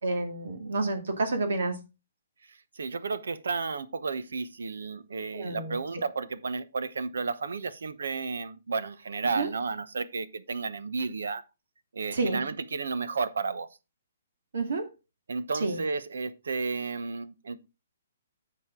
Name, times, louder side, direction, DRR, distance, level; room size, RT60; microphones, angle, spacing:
voice 1, 0.0-1.8 5.3-5.8 9.2-9.5 12.1-12.4 14.5-14.8 15.6-15.8, right 3 dB, 70° right, 2.3 m, -29 dB
voice 2, 2.5-11.4 11.9-13.7 15.3-17.6, right 4 dB, 85° right, 1.0 m, -32 dB
10.0 x 6.5 x 3.7 m
hypercardioid pair, 170°, 0 cm